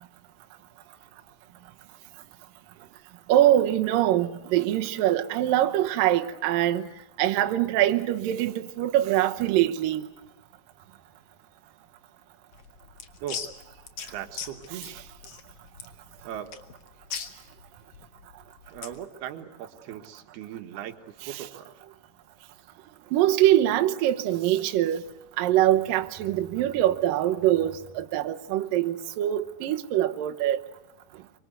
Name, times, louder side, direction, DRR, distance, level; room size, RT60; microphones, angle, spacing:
voice 1, 3.3-6.8 7.2-10.0 14.8-14.9 21.3-21.4 23.1-25.0 25.4-30.6, right 13 dB, 70° right, 2.6 m, -23 dB
sound 1, 12.5-19.0, left 7 dB, 50° left, 2.0 m, -40 dB
voice 2, 14.1-15.0 16.2-16.5 18.7-21.8, right 10 dB, 85° right, 3.4 m, -39 dB
25.5 x 25.0 x 8.1 m
omnidirectional pair, 4.4 m